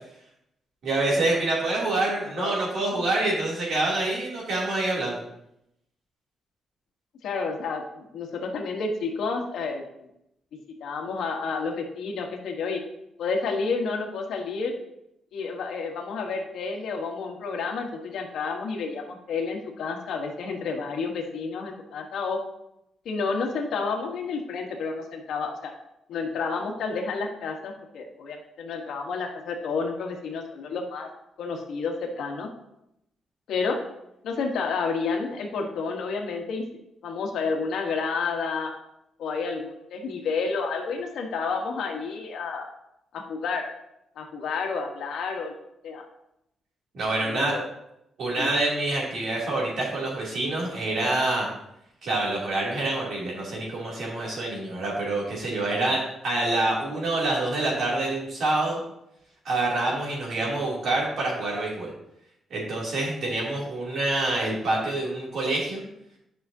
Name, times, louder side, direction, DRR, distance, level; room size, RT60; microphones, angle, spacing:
voice 1, 0.8-5.2 46.9-47.5 48.2-51.5 52.0-58.8 59.4-61.9 62.5-65.8, right 2 dB, 60° right, -4 dB, 2.8 m, -26 dB
voice 2, 7.2-10.1 10.8-12.8 13.2-14.7 15.3-22.4 23.0-25.7 26.1-31.1 31.4-32.5 33.5-33.8 34.2-36.6 37.0-38.7 39.2-42.7 43.1-43.6 44.2-45.5 45.8-46.0 47.2-47.7 48.4-48.5, left 4 dB, 75° left, 2 dB, 1.3 m, -30 dB
10.5 x 5.7 x 2.8 m, 0.81 s
wide cardioid pair, 175°, 0 cm